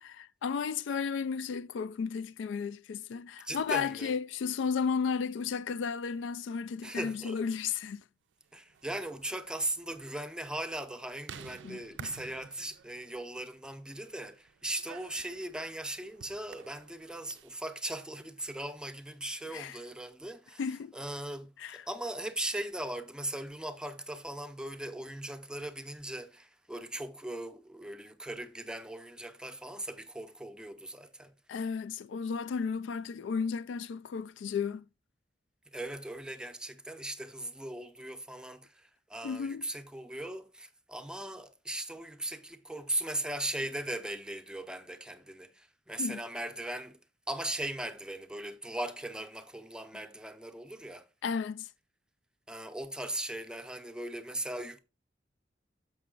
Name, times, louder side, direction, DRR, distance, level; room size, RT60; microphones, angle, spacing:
voice 1, 0.0-8.0 11.6-12.1 19.5-19.8 20.6-20.9 21.6-21.8 31.5-34.8 39.2-39.7 46.0-46.2 51.2-51.7, left 6 dB, 80° left, 0.3 m, -34 dB
voice 2, 3.4-4.2 6.8-7.4 8.5-20.6 20.9-31.3 35.7-47.0 47.3-51.1 52.5-54.8, right 1 dB, 5° right, 0.6 m, -39 dB
sound 1, 8.6-17.7, right 7 dB, 75° right, 0.4 m, -52 dB
6.7 x 5.7 x 3.7 m
head